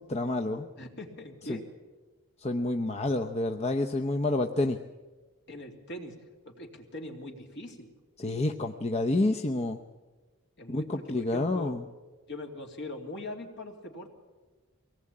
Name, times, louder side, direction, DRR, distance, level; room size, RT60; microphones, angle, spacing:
voice 1, 0.0-0.7 1.5-1.6 2.4-4.8 8.2-9.8 10.7-11.8, left 2 dB, 30° left, 4 dB, 0.8 m, -29 dB
voice 2, 0.8-1.7 5.5-6.2 6.4-7.9 10.6-11.7 12.3-14.1, left 1 dB, 55° left, 2 dB, 3.0 m, -41 dB
23.0 x 18.5 x 8.7 m, 1.3 s
head